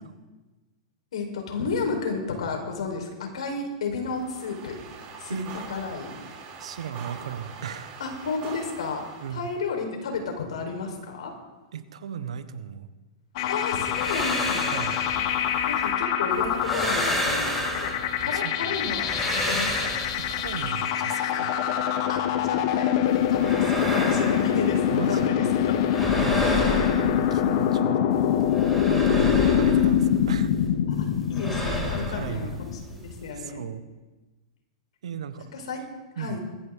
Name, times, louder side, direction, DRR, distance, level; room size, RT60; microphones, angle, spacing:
voice 1, 1.1-4.8 5.2-5.4 5.7-6.1 8.0-9.0 9.3-11.3 13.5-14.8 15.1-15.2 15.7-19.8 22.1-25.8 26.3-26.7 29.1-29.5 30.9-33.7 35.5-35.8 36.2-36.4, left 4 dB, 80° left, 3 dB, 4.7 m, -32 dB
sound 1, 4.0-9.7, right 6 dB, 40° right, 4.2 m, -43 dB
voice 2, 6.6-8.0 9.2-9.5 11.7-12.9 14.7-15.0 18.2-18.5 20.2-21.5 24.9-25.5 26.1-26.4 26.8-28.2 28.8-30.5 32.1-32.6 33.3-33.8 35.0-35.5 36.2-36.4, right 8 dB, 80° right, 11 dB, 1.4 m, -36 dB
sound 2, 13.4-32.8, left 9 dB, 55° left, 1.4 m, -25 dB
sound 3, 13.7-15.9 16.3-18.3 18.7-20.7 23.1-25.3 25.5-27.8 28.1-30.7 30.9-33.3, equal, ahead, 6.5 m, -31 dB
21.0 x 14.5 x 3.9 m, 1.2 s
hypercardioid pair, 125°, 3 cm